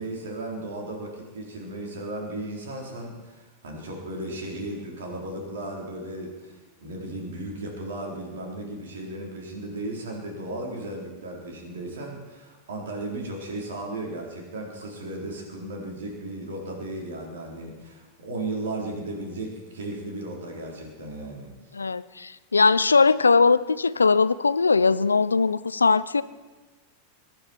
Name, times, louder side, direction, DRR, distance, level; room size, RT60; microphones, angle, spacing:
voice 1, 0.0-21.5, right 2 dB, 70° right, 0 dB, 3.9 m, -35 dB
voice 2, 21.7-26.2, left 4 dB, 85° left, 17 dB, 0.5 m, -20 dB
22.0 x 10.5 x 4.5 m, 1.3 s
figure-of-eight pair, 90°, 0 cm